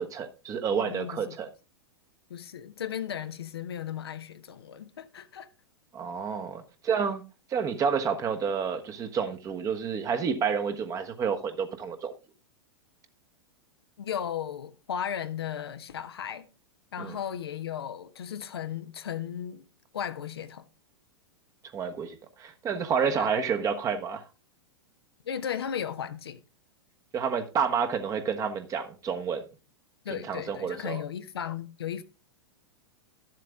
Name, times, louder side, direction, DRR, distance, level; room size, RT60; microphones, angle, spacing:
voice 1, 0.0-1.5 5.9-7.2 7.5-12.1 17.0-17.1 21.7-24.2 27.1-29.4 30.1-31.0, right 6 dB, 25° right, 1.3 m, -29 dB
voice 2, 0.7-1.4 2.3-5.5 14.0-16.5 16.9-19.6 19.9-20.7 23.1-23.3 25.2-26.4 30.0-32.0, left 9 dB, 65° left, 1.0 m, -35 dB
12.5 x 7.6 x 3.7 m
figure-of-eight pair, 95°, 14 cm